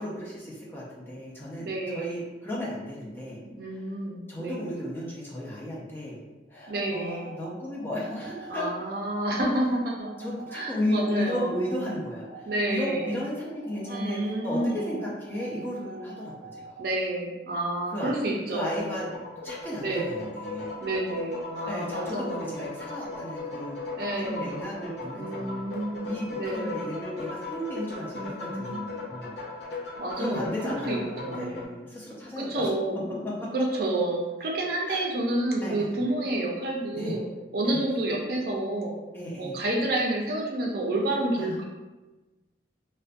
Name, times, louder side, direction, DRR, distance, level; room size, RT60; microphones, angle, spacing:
voice 1, 0.0-3.9 4.3-6.2 6.5-8.7 10.2-16.8 17.9-18.1 18.5-19.1 19.4-20.7 21.7-23.8 24.1-29.4 30.1-32.7 33.4-33.5 34.9-35.0 35.6-35.7 37.0-37.2 37.6-37.8 39.1-39.6 41.4-41.6, left 1 dB, 10° left, -6 dB, 0.4 m, -34 dB
voice 2, 1.6-2.1 3.6-4.6 6.7-7.2 8.5-10.1 10.5-11.5 12.5-13.2 13.9-14.9 16.8-18.9 19.8-20.2 20.8-22.6 24.0-24.6 25.1-26.9 28.1-28.9 30.0-31.6 32.4-37.2 37.5-38.9 39.4-41.6, right 1 dB, 55° right, -1 dB, 0.4 m, -29 dB
sound 1, 6.5-16.9, right 4 dB, 45° left, 1.3 m, -46 dB
sound 2, 18.8-31.6, left 3 dB, 70° left, 0.5 m, -38 dB
2.4 x 2.1 x 2.5 m, 1.1 s
head